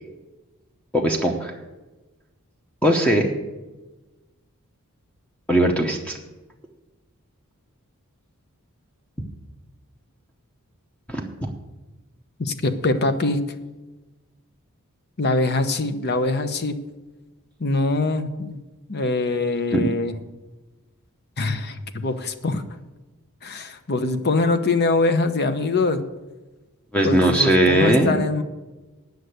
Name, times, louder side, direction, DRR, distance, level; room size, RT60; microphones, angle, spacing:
voice 1, 0.9-1.5 2.8-3.3 5.5-6.2 11.1-11.5 19.7-19.9 26.9-28.2, right 1 dB, 5° left, 2 dB, 0.8 m, -19 dB
voice 2, 12.4-13.4 15.2-16.8 17.6-18.6 18.9-20.1 21.4-22.6 23.4-26.0 27.0-28.4, left 3 dB, 50° left, 10 dB, 0.9 m, -23 dB
9.6 x 6.6 x 8.1 m, 1.1 s
head